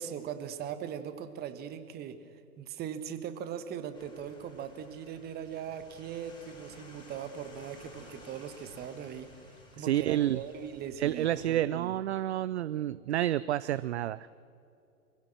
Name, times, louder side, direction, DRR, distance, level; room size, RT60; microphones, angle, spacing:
voice 1, 0.0-11.9, right 8 dB, 20° right, 11 dB, 1.3 m, -40 dB
sound 1, 3.9-11.5, left 2 dB, 10° left, 3.9 m, -55 dB
voice 2, 9.8-10.4 11.0-14.3, right 13 dB, 50° right, 18 dB, 0.5 m, -29 dB
23.5 x 16.0 x 7.5 m, 2.6 s
figure-of-eight pair, 110°, 44 cm